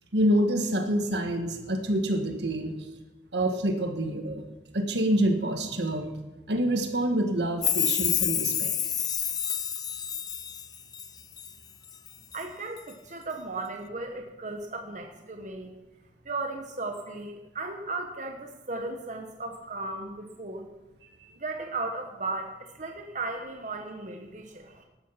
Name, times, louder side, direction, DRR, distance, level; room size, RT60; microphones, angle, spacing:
voice 1, 0.1-2.8 3.3-4.4 4.7-6.1 6.5-8.7, right 1 dB, 75° right, 5 dB, 1.8 m, -26 dB
Chime, 7.6-11.5 11.9-12.4 12.8-12.9, left 9 dB, 25° left, 0.5 m, -29 dB
voice 2, 12.3-15.7 16.2-20.7 21.4-24.9, right 3 dB, 45° right, 3 dB, 1.3 m, -36 dB
12.5 x 12.5 x 5.8 m, 1.1 s
head